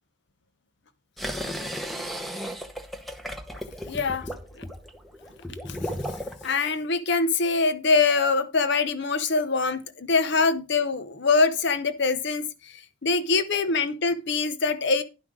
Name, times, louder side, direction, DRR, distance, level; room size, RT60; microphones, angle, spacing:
sound 1, 1.2-6.5, equal, ahead, 0.8 m, -35 dB
voice 1, 3.9-4.3 4.6-4.7 5.7-5.8 6.4-15.0, left 4 dB, 55° left, 0.8 m, -24 dB
11.0 x 5.7 x 4.7 m
head